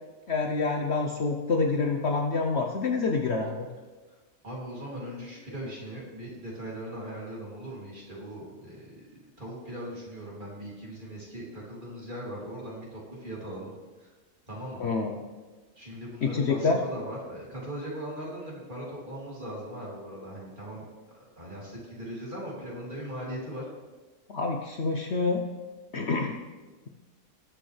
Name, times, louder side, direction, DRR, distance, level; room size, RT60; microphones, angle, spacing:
voice 1, 0.3-3.7 14.8-15.2 16.2-16.8 24.3-25.4 25.9-26.4, left 4 dB, 55° left, 3 dB, 1.0 m, -27 dB
voice 2, 4.4-13.7 14.0-14.1 14.5-14.9 15.8-20.8 21.1-23.6, right 1 dB, 35° right, -5 dB, 2.9 m, -39 dB
19.5 x 6.6 x 3.3 m, 1.3 s
omnidirectional pair, 1.5 m